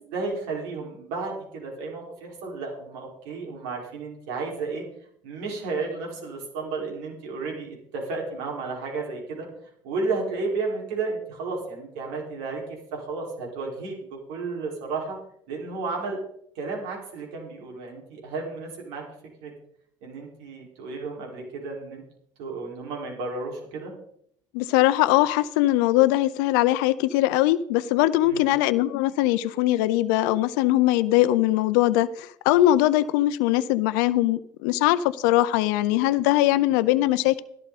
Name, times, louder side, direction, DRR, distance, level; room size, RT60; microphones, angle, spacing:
voice 1, 0.1-4.8 5.2-9.5 9.8-12.6 12.9-15.2 15.5-16.2 16.5-19.0 19.4-19.5 20.0-22.0 22.4-23.9 28.2-28.5, right 3 dB, 85° right, 5.0 m, -32 dB
voice 2, 24.5-37.4, left 15 dB, 90° left, 0.6 m, -21 dB
13.0 x 12.0 x 4.1 m
supercardioid pair, 105°, 10 cm